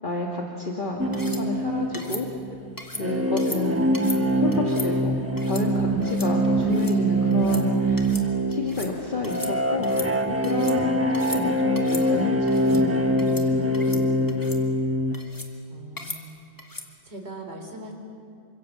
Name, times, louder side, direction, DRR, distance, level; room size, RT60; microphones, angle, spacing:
voice 1, 0.0-2.3 2.9-3.9 4.3-5.2 5.4-8.1 8.5-9.9 10.3-14.2, left 2 dB, 50° left, 0 dB, 2.3 m, -30 dB
sound 1, 1.0-15.1, equal, 10° right, 1.6 m, -24 dB
sound 2, 1.1-1.4 1.9-2.2 2.8-3.0 3.4-3.6 3.9-4.2 4.5-4.9 5.4-5.6 6.0-6.3 6.6-6.9 7.3-7.6 8.0-8.3 8.5-8.9 9.2-9.5 9.8-10.8 11.1-11.4 11.8-12.0 12.5-12.8 13.2-13.5 13.7-14.0 14.3-14.6 15.1-15.5 16.0-16.2 16.6-16.9, left 2 dB, 20° left, 2.0 m, -37 dB
voice 2, 15.7-16.4 17.0-17.9, right 1 dB, 70° right, 2 dB, 4.2 m, -40 dB
28.0 x 25.0 x 7.4 m, 2.3 s
omnidirectional pair, 1.1 m